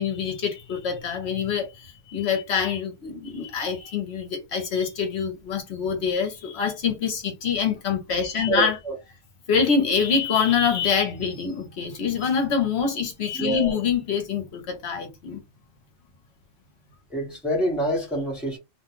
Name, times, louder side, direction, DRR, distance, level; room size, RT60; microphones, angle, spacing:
voice 1, 0.0-8.8 9.5-15.4, left 6 dB, 65° left, 0.9 m, -25 dB
voice 2, 8.5-8.9 13.4-13.7 17.1-18.6, right 1 dB, ahead, 0.8 m, -26 dB
2.4 x 2.2 x 2.9 m
omnidirectional pair, 1.2 m